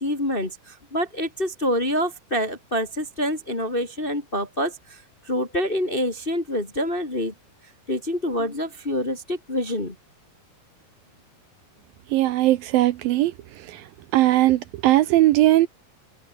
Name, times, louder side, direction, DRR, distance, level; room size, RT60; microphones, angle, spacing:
voice 1, 0.0-7.3 7.9-9.9, equal, 20° left, 1.6 m, -26 dB
voice 2, 12.1-13.9 14.1-15.7, right 15 dB, 75° right, 2.4 m, -19 dB
omnidirectional pair, 4.6 m